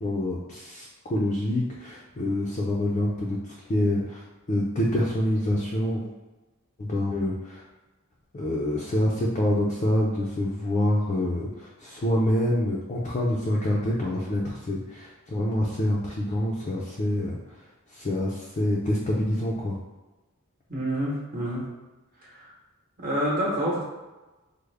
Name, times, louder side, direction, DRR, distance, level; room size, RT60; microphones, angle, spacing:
voice 1, 0.0-4.2 4.5-6.1 6.8-7.6 8.3-17.4 17.9-19.8, left 1 dB, 30° left, -4 dB, 0.4 m, -26 dB
voice 2, 20.7-21.7 22.3-22.5 23.0-23.8, right 1 dB, 40° right, -5 dB, 1.0 m, -28 dB
3.4 x 2.1 x 3.2 m, 1.1 s
head